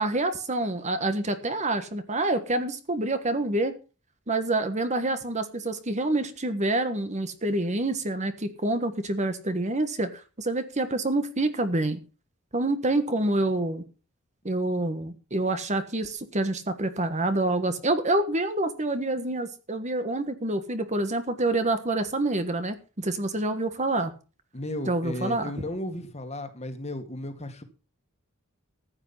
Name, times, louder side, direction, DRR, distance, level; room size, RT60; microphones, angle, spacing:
voice 1, 0.0-3.7 4.3-12.0 12.5-13.8 14.4-24.1 24.9-25.5, right 2 dB, 30° right, 10 dB, 1.4 m, -27 dB
voice 2, 24.5-27.6, left 1 dB, 30° left, 8 dB, 2.0 m, -34 dB
14.5 x 8.9 x 5.5 m, 0.34 s
head